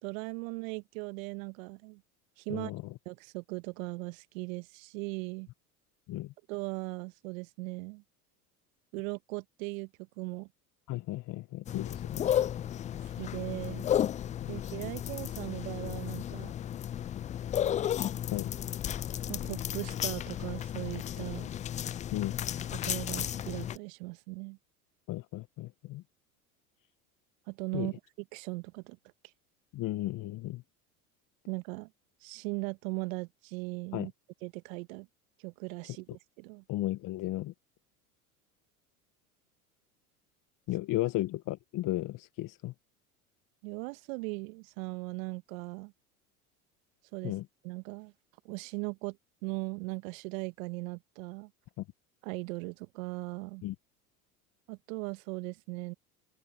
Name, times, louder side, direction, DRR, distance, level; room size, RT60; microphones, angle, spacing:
voice 1, 0.0-2.0 2.4-2.7 3.0-5.5 6.5-8.0 8.9-9.9 10.2-10.5 13.2-13.9 14.5-16.5 19.3-21.5 22.7-24.6 27.5-29.0 31.5-31.9 32.2-34.1 34.4-35.1 35.4-36.6 43.6-45.9 47.1-47.3 47.6-48.1 48.4-49.2 49.4-51.5 52.2-53.6 54.7-55.9, right 29 dB, 65° right, 1.7 m, -38 dB
voice 2, 2.5-2.8 6.1-6.3 10.9-12.3 14.4-14.5 18.3-18.5 22.1-22.4 25.1-26.0 27.7-27.9 29.7-30.6 33.9-34.1 36.7-37.5 40.7-42.7 47.2-47.4 51.8-51.9 53.6-53.7, left 16 dB, 45° left, 1.3 m, -34 dB
sound 1, 11.7-23.8, left 10 dB, 20° left, 0.3 m, -33 dB
hypercardioid pair, 80°, 44 cm